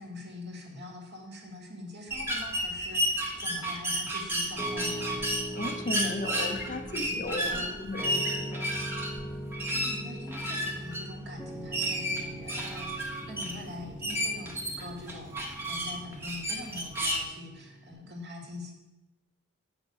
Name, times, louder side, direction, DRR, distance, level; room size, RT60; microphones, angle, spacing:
voice 1, 0.0-5.3 7.5-7.7 9.7-18.7, left 2 dB, 55° right, 0 dB, 2.1 m, -44 dB
sound 1, 2.1-17.2, equal, 10° right, 1.2 m, -32 dB
Piano, 4.6-17.9, right 1 dB, 5° left, 0.8 m, -41 dB
voice 2, 5.5-8.7, left 2 dB, 35° left, 5 dB, 0.8 m, -35 dB
8.8 x 6.3 x 6.3 m, 1.0 s
head